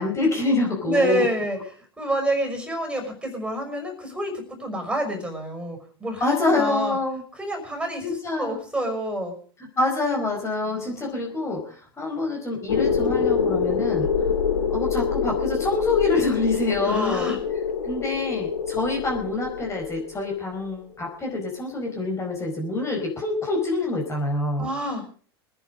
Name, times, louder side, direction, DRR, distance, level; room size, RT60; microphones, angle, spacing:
voice 1, 0.0-1.2 6.2-7.2 8.0-8.5 9.6-14.1 14.7-17.3 17.8-24.7, left 2 dB, 20° left, 0 dB, 4.8 m, -26 dB
voice 2, 0.8-1.6 2.0-7.0 7.3-9.3 10.7-11.2 16.8-17.4 24.6-25.0, right 1 dB, 10° right, 3 dB, 5.8 m, -28 dB
sound 1, 12.7-20.5, left 6 dB, 85° left, 3.1 m, -25 dB
24.0 x 10.5 x 5.0 m, 0.43 s
hypercardioid pair, 95°, 13 cm